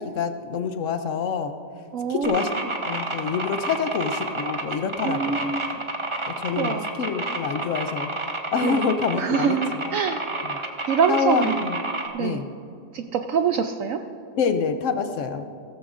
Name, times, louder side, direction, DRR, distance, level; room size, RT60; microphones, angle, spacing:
voice 1, 0.0-1.5 2.1-2.5 2.9-5.5 6.2-8.1 8.5-9.6 9.8-10.0 10.5-10.6 11.1-11.8 12.2-12.4 14.4-15.4, left 6 dB, 70° left, 8 dB, 0.7 m, -26 dB
voice 2, 1.9-2.5 5.0-5.8 6.6-6.9 8.6-8.8 9.2-10.2 10.9-11.6 12.1-12.5 12.9-14.0, right 6 dB, 85° right, 7 dB, 0.7 m, -25 dB
sound 1, 2.2-12.1, right 2 dB, 30° right, 0.6 m, -29 dB
16.5 x 14.5 x 2.5 m, 2.5 s
omnidirectional pair, 1.9 m